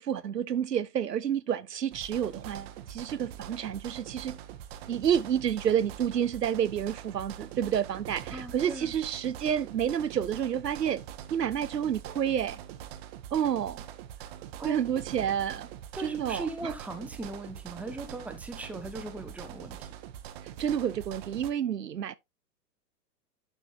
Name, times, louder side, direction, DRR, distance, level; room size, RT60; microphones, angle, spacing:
voice 1, 0.0-4.4 4.9-11.0 11.3-12.6 13.3-13.8 14.6-15.7 16.0-16.7 20.6-22.2, right 9 dB, 80° right, 0.7 m, -29 dB
sound 1, 1.9-21.5, right 10 dB, 40° right, 1.1 m, -44 dB
voice 2, 8.3-8.9 14.6-14.8 15.9-19.9, right 2 dB, 5° right, 1.0 m, -39 dB
11.0 x 6.1 x 2.5 m
figure-of-eight pair, 110°, 48 cm